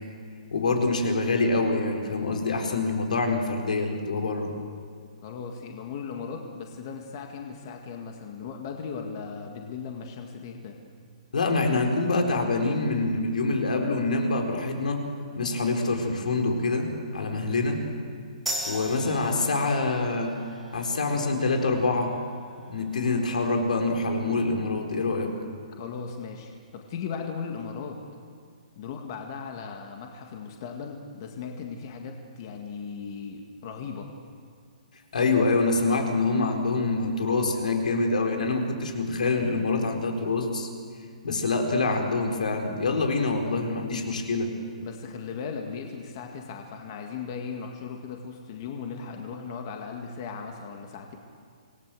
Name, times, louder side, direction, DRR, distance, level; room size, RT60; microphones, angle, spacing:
voice 1, 0.5-4.5 11.3-15.0 15.3-17.9 18.6-20.3 20.7-22.1 22.7-25.3 35.1-40.7 41.2-44.5, left 3 dB, 80° left, 3 dB, 4.4 m, -25 dB
voice 2, 5.2-10.8 25.7-28.0 28.8-34.1 44.8-51.2, left 6 dB, 30° left, 2 dB, 1.9 m, -37 dB
sound 1, 18.5-25.5, right 1 dB, ahead, 3.4 m, -41 dB
26.5 x 19.5 x 7.8 m, 2.2 s
hypercardioid pair, 170°, 4 cm